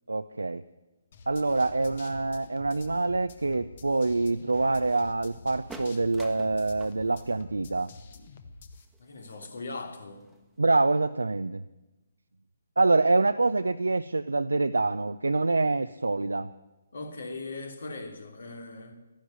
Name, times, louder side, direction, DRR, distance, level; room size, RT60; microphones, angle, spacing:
voice 1, 0.1-0.6 1.3-7.9 10.6-11.6 12.8-16.5, right 3 dB, 80° right, 10 dB, 0.5 m, -26 dB
sound 1, 1.1-8.9, left 3 dB, 45° left, 1.5 m, -48 dB
sound 2, 5.6-10.8, right 2 dB, 5° right, 1.4 m, -49 dB
voice 2, 9.0-10.3 16.9-18.9, left 3 dB, 65° left, 4 dB, 3.1 m, -39 dB
13.0 x 11.5 x 9.4 m, 1.1 s
figure-of-eight pair, 140°, 0 cm